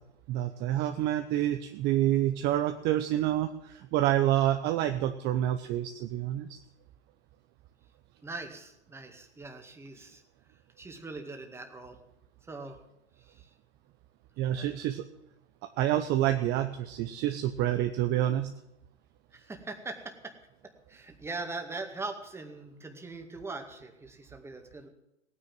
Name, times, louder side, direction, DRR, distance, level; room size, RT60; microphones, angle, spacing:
voice 1, 0.3-6.6 14.4-15.0 15.8-18.5, right 12 dB, 30° right, 7 dB, 0.9 m, -28 dB
voice 2, 8.2-10.2 10.8-12.0 12.5-12.8 13.2-13.5 14.5-14.7 19.3-20.3 20.6-24.9, right 3 dB, 5° right, 4 dB, 2.1 m, -41 dB
17.5 x 9.7 x 7.5 m, 0.88 s
hypercardioid pair, 110°, 34 cm